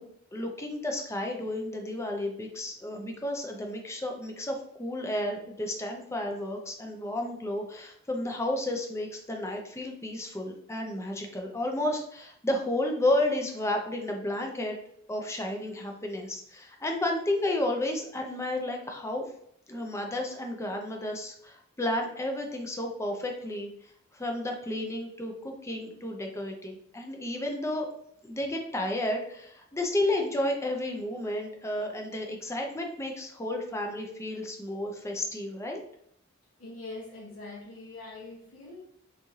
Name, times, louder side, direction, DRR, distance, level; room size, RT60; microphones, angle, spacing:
voice 1, 0.3-14.8 15.1-19.3 19.7-23.7 24.1-27.9 28.2-35.8, left 1 dB, 15° left, 2 dB, 0.5 m, -32 dB
voice 2, 36.6-38.8, left 2 dB, 85° left, -4 dB, 1.0 m, -43 dB
3.5 x 3.1 x 2.7 m, 0.69 s
head